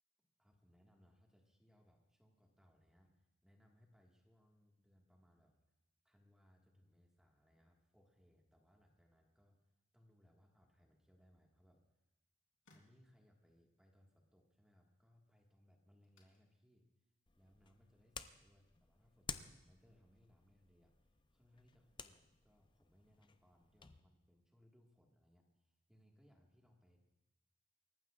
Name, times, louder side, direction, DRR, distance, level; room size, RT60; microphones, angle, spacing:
voice 1, 0.4-5.6 6.0-9.6 9.9-11.8 12.7-16.8 17.4-20.9 21.3-27.0, equal, 5° right, -1 dB, 1.7 m, -70 dB
sound 1, 11.7-19.0, left 2 dB, 90° left, 3.4 m, -78 dB
sound 2, 17.3-24.0, left 5 dB, 25° left, 0.6 m, -54 dB
28.0 x 15.0 x 2.5 m, 0.96 s
head